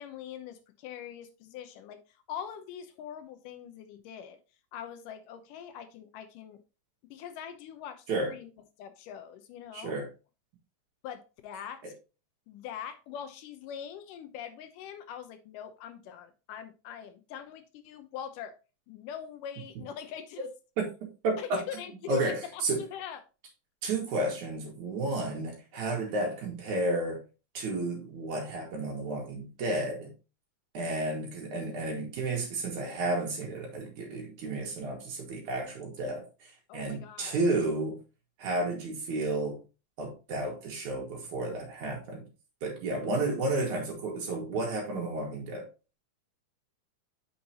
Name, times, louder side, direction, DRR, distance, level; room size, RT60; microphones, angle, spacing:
voice 1, 0.0-4.4 4.7-6.6 7.1-8.5 8.8-10.0 11.0-11.8 12.5-18.5 18.9-20.5 21.4-23.2 36.7-37.4, left 9 dB, 85° left, 9 dB, 2.5 m, -43 dB
voice 2, 9.7-10.1 20.8-20.9 21.2-21.6 22.1-22.4 22.6-22.8 23.8-27.2 27.6-30.1 30.7-38.0 38.4-39.6 40.0-42.3 42.6-45.6, right 2 dB, 65° right, 0 dB, 3.6 m, -32 dB
8.3 x 5.6 x 2.9 m, 0.32 s
omnidirectional pair, 3.6 m